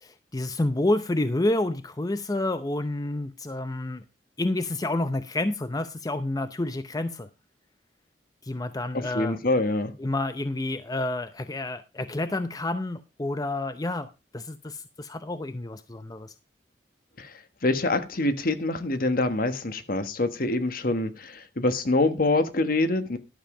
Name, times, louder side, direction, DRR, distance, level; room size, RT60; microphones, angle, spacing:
voice 1, 0.0-4.0 4.4-7.3 8.4-9.4 10.0-16.3, left 2 dB, 20° left, 0.6 m, -29 dB
voice 2, 8.9-9.9 17.2-17.3 17.6-23.2, left 2 dB, 55° left, 1.3 m, -25 dB
12.0 x 7.3 x 4.8 m
head